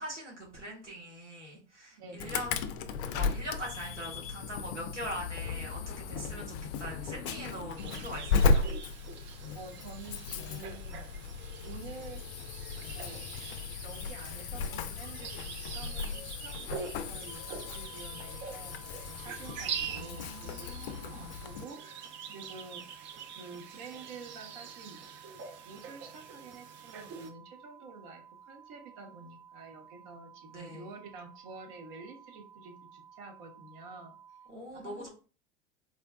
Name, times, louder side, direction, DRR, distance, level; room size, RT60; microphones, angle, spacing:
voice 1, 0.0-2.6 3.1-8.7 19.9-21.4 30.5-30.9 34.5-35.1, equal, 90° right, -2 dB, 1.2 m, -42 dB
voice 2, 2.0-2.4 9.2-11.3 11.6-12.2 12.9-13.2 13.8-21.1 21.4-23.0 23.3-25.0 25.6-34.2 34.7-35.1, right 3 dB, 55° right, 3 dB, 1.0 m, -49 dB
Insect / Alarm, 2.2-21.6, left 4 dB, 50° left, 0.4 m, -35 dB
sound 1, 7.8-27.3, right 7 dB, 35° right, 0.5 m, -45 dB
sound 2, 17.3-34.5, right 8 dB, 15° right, 1.1 m, -55 dB
4.1 x 2.2 x 2.2 m, 0.37 s
figure-of-eight pair, 80°, 35 cm